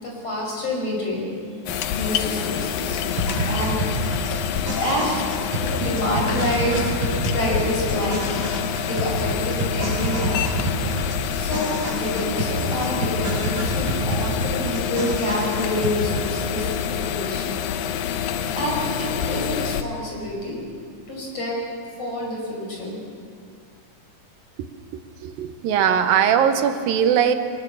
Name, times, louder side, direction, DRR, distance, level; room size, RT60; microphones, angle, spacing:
voice 1, 0.0-1.4 1.9-5.2 5.6-8.3 8.9-10.4 10.7-10.9 11.3-17.6 18.5-20.6 21.1-21.6 22.0-23.0, left 1 dB, 45° left, -2 dB, 6.9 m, -28 dB
sound 1, 1.7-19.8, left 8 dB, 90° left, 2.7 m, -27 dB
sound 2, 3.1-16.4, right 1 dB, 35° right, 7.5 m, -28 dB
voice 2, 25.2-27.3, right 8 dB, 85° right, 8 dB, 2.8 m, -20 dB
22.5 x 22.0 x 7.0 m, 2.2 s
omnidirectional pair, 4.0 m